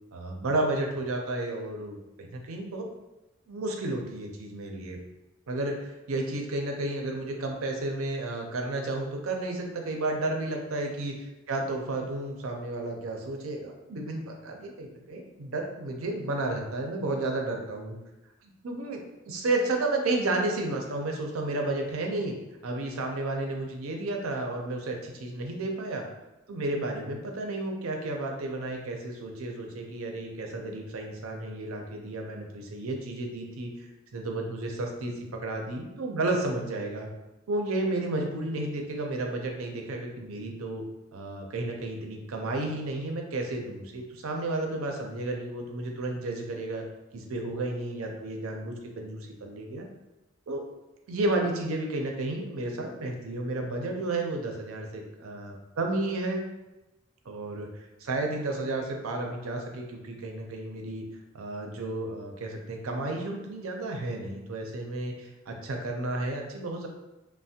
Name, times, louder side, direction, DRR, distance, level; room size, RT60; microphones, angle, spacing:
voice 1, 0.1-2.9 3.5-5.0 5.5-11.1 11.5-18.0 18.4-22.3 22.6-26.1 26.5-35.1 35.4-37.1 37.5-40.8 41.1-46.8 47.1-49.9 50.5-50.6 51.1-56.4 57.3-57.7 58.0-61.0 61.3-66.9, right 2 dB, 80° right, 2 dB, 0.5 m, -32 dB
3.2 x 2.1 x 2.7 m, 1.0 s
head